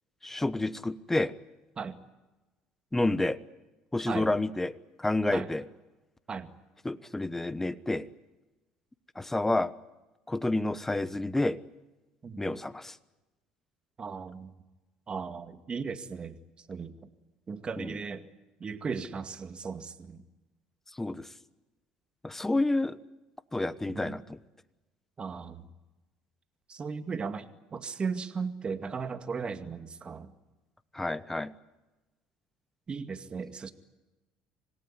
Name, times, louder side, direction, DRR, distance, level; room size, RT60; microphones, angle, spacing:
voice 1, 0.2-1.3 2.9-3.4 3.9-4.7 5.0-5.7 6.8-8.1 9.2-9.7 10.3-11.6 12.4-12.9 17.8-18.0 21.0-21.3 22.2-23.0 23.5-24.4 30.9-31.5, left 2 dB, 10° left, 16 dB, 1.2 m, -29 dB
voice 2, 14.0-14.5 15.1-16.4 16.7-17.0 17.5-18.2 18.6-20.2 23.9-24.2 25.2-25.6 26.7-30.3 32.9-33.7, right 5 dB, 35° right, 9 dB, 2.1 m, -36 dB
26.0 x 18.0 x 10.0 m, 1.1 s
hypercardioid pair, 70°, 3 cm